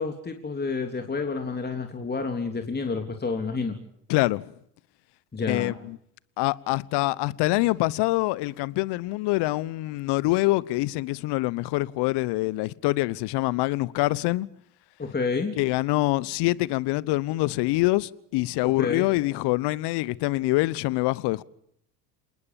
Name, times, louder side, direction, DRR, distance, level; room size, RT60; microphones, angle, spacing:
voice 1, 0.0-3.8 5.3-5.7 15.0-15.6 18.6-19.1, left 4 dB, 20° left, 3.3 m, -29 dB
voice 2, 4.1-4.5 5.5-6.0 6.4-14.5 15.6-21.4, left 20 dB, 55° left, 1.2 m, -25 dB
28.0 x 19.5 x 7.2 m
hypercardioid pair, 75°, 48 cm